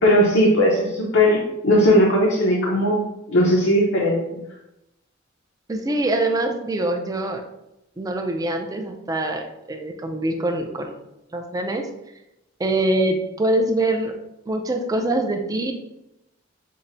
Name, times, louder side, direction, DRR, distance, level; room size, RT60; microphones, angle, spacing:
voice 1, 0.0-4.2, equal, 65° left, -2 dB, 0.6 m, -18 dB
voice 2, 5.7-7.4 8.0-11.0 11.3-11.9 12.6-14.1 14.5-15.7, right 1 dB, 20° right, 4 dB, 0.3 m, -24 dB
5.4 x 2.0 x 2.6 m, 0.89 s
head